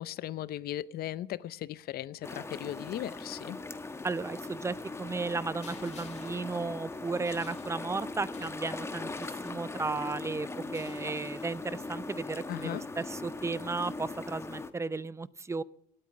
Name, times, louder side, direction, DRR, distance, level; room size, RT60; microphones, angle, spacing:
voice 1, 0.0-3.6 12.5-12.8, left 12 dB, 65° left, 0.7 m, -37 dB
sound 1, 2.2-14.7, left 3 dB, 15° left, 1.1 m, -40 dB
voice 2, 4.0-15.6, right 3 dB, 15° right, 0.6 m, -35 dB
sound 2, 5.6-10.1 10.6-11.9, left 7 dB, 40° left, 1.8 m, -57 dB
18.0 x 8.9 x 8.9 m
cardioid pair, 110°, 17 cm